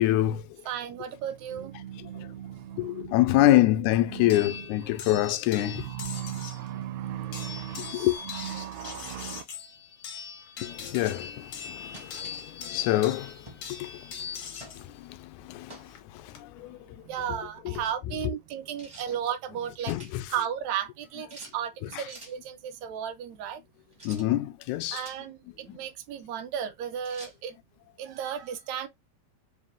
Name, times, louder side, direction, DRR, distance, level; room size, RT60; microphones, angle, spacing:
voice 1, 0.0-0.6 2.8-5.9 7.9-8.2 10.6-14.4 14.8-17.0 17.7-17.8 19.9-20.3 21.9-22.0 24.0-25.0 25.7-25.8, left 15 dB, 85° left, 2.0 m, -26 dB
voice 2, 0.7-3.7 4.0-4.7 5.0-5.3 5.6-9.4 16.6-19.9 20.3-23.6 24.9-27.6 28.0-28.9, right 9 dB, 80° right, 1.8 m, -35 dB
sound 1, 4.3-6.7 7.3-14.8 15.9-16.4, left 7 dB, 60° left, 1.2 m, -41 dB
sound 2, 11.9-12.5 13.4-13.7 14.6-14.8 15.7-16.0 18.8-19.1 19.6-20.1 21.3-21.6 22.1-22.4 23.9-24.3 24.8-25.2 27.0-27.4, right 1 dB, 35° right, 0.4 m, -47 dB
4.9 x 2.5 x 3.5 m
omnidirectional pair, 3.4 m